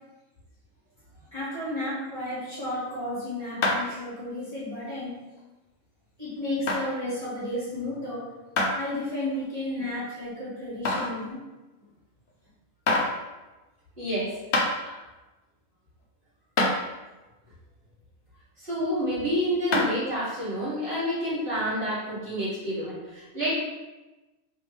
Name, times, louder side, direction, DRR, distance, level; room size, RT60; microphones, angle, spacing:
voice 1, 1.3-5.2 6.2-8.4 8.7-11.4, left 1 dB, 30° left, -11 dB, 1.5 m, -33 dB
sound 1, 3.6-4.0 4.5-4.6 5.4-5.5 6.7-6.8 8.6-8.7 9.3-9.4 10.8-11.2 12.3-12.4 12.9-13.1 14.1-14.2 14.5-14.7 16.0-16.1 16.6-16.7 19.7-20.0, left 2 dB, 55° left, 0.7 m, -24 dB
voice 2, 14.0-14.4 14.8-14.9 18.6-23.5, equal, 40° right, -11 dB, 1.7 m, -28 dB
3.3 x 3.1 x 3.3 m, 1.1 s
omnidirectional pair, 1.4 m